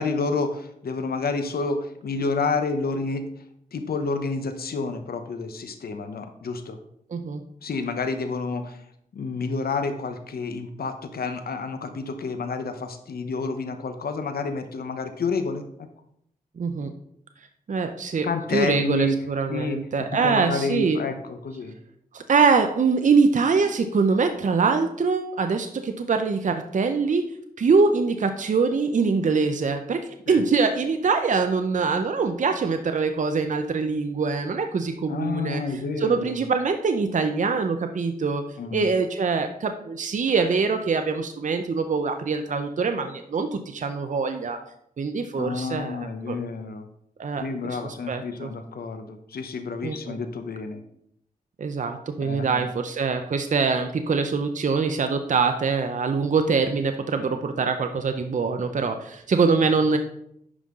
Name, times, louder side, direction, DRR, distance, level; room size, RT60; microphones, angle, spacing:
voice 1, 0.0-3.3 3.7-6.8 7.6-8.9 9.1-15.9 18.2-19.2 19.5-21.8 30.3-30.4 35.1-36.4 38.6-38.8 45.4-46.9 47.4-50.8 52.2-52.7, left 4 dB, 80° left, 8 dB, 0.9 m, -29 dB
voice 2, 7.1-7.4 16.6-16.9 17.7-21.0 22.1-27.2 27.6-35.6 36.0-38.4 38.7-44.6 45.0-46.4 47.2-48.5 49.8-50.2 51.6-60.0, right 4 dB, 55° right, 7 dB, 0.6 m, -24 dB
9.8 x 5.5 x 3.7 m, 0.73 s
wide cardioid pair, 90°, 16 cm